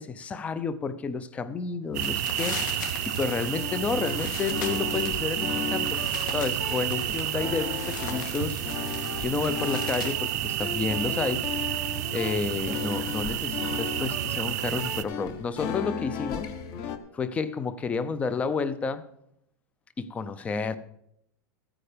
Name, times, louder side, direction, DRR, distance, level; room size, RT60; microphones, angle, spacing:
voice 1, 0.0-6.0 6.3-8.6 9.2-11.5 12.1-16.5 17.1-19.1 20.0-20.8, left 5 dB, 10° left, 0.5 m, -31 dB
sound 1, 1.9-10.2, left 6 dB, 75° left, 2.6 m, -40 dB
sound 2, 1.9-15.0, right 13 dB, 55° right, 0.7 m, -30 dB
sound 3, 3.5-17.0, left 7 dB, 35° left, 0.9 m, -36 dB
14.5 x 8.8 x 5.1 m
supercardioid pair, 165°, 10 cm